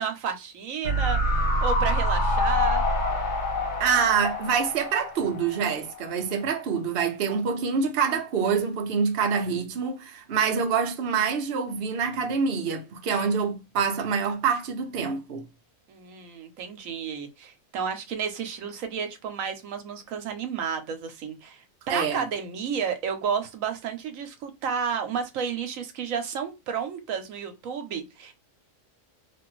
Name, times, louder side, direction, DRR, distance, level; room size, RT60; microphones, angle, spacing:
voice 1, 0.0-2.8 15.9-28.3, right 6 dB, 80° right, 1.1 m, -31 dB
sound 1, 0.8-6.1 6.4-6.5, left 1 dB, 60° left, 1.1 m, -26 dB
voice 2, 3.8-15.4 21.9-22.3, right 6 dB, 55° right, 0.8 m, -26 dB
2.9 x 2.5 x 3.0 m
omnidirectional pair, 1.4 m